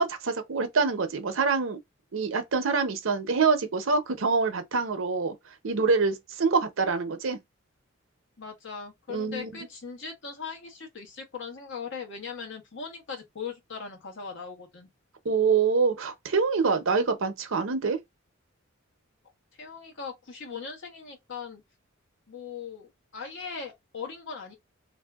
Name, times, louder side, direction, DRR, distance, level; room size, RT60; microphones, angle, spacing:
voice 1, 0.0-1.8 2.1-5.3 5.6-7.4 9.1-9.5 15.2-18.0, right 4 dB, 70° right, 0.7 m, -25 dB
voice 2, 8.4-14.9 19.6-21.6 22.3-24.5, left 5 dB, 60° left, 1.0 m, -39 dB
3.4 x 2.6 x 2.3 m
head